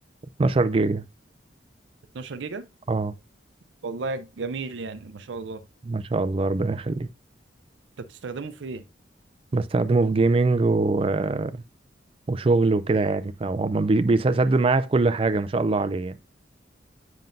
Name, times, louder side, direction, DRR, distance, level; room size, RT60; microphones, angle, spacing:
voice 1, 0.4-1.0 2.9-3.1 5.9-7.1 9.5-11.6 12.3-16.2, right 3 dB, 30° right, 0.4 m, -22 dB
voice 2, 2.1-2.6 3.8-5.6 8.0-8.8, right 3 dB, 85° right, 0.5 m, -34 dB
7.6 x 5.3 x 2.6 m
head